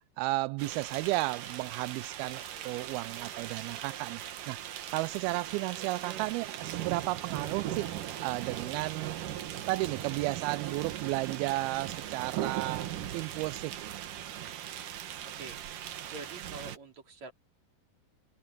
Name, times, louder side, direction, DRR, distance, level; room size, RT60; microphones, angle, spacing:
voice 1, 0.2-4.2 4.5-4.6 4.9-7.9 8.2-9.2 9.7-14.1, right 20 dB, 85° right, 2.5 m, -33 dB
sound 1, 0.6-16.8, right 11 dB, 65° right, 2.8 m, -39 dB
voice 2, 16.0-17.3, right 3 dB, 50° right, 4.5 m, -45 dB
omnidirectional pair, 4.3 m